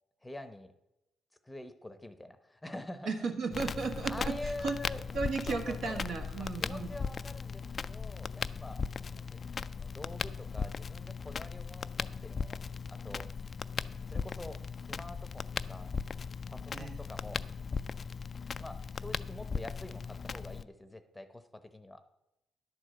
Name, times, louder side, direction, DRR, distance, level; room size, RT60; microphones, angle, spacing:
voice 1, 0.2-0.7 1.4-3.1 4.1-5.0 5.5-6.0 6.4-8.8 9.1-12.6 12.9-13.3 14.1-15.9 16.5-17.4 18.6-22.0, left 1 dB, 10° left, 11 dB, 0.8 m, -46 dB
voice 2, 3.1-4.8 5.1-6.9 16.7-17.0, right 4 dB, 65° right, 4 dB, 1.5 m, -35 dB
Crackle, 3.5-20.6, left 5 dB, 40° left, 0.3 m, -38 dB
11.0 x 4.9 x 7.7 m, 0.90 s
cardioid pair, 90°, 0 cm